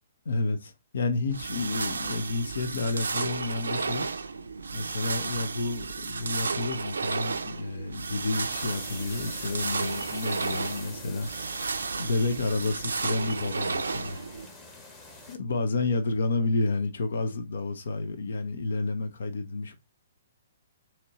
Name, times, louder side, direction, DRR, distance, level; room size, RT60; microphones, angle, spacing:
voice 1, 0.3-4.1 4.7-11.3 12.0-14.2 15.3-19.7, left 3 dB, 60° left, 0.6 m, -30 dB
sound 1, 1.3-14.5, right 4 dB, 70° right, 0.4 m, -33 dB
sound 2, 8.5-15.4, left 3 dB, 15° left, 1.2 m, -46 dB
4.3 x 2.9 x 2.8 m
figure-of-eight pair, 125°, 0 cm